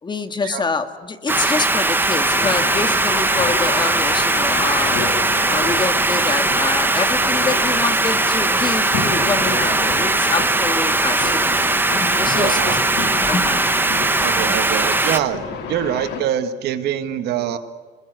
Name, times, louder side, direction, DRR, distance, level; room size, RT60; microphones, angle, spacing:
voice 1, 0.0-5.0 5.5-11.6 11.9-12.8 13.2-13.7 14.4-14.6, left 4 dB, 25° left, 9 dB, 2.0 m, -26 dB
sound 1, 1.3-15.2, right 2 dB, 10° right, 1.3 m, -19 dB
sound 2, 2.2-16.2, left 5 dB, 85° left, 3.3 m, -30 dB
voice 2, 12.3-12.8 14.2-15.4 15.7-17.6, right 10 dB, 75° right, 9 dB, 1.9 m, -24 dB
27.0 x 21.0 x 8.2 m, 1.5 s
cardioid pair, 110°, 17 cm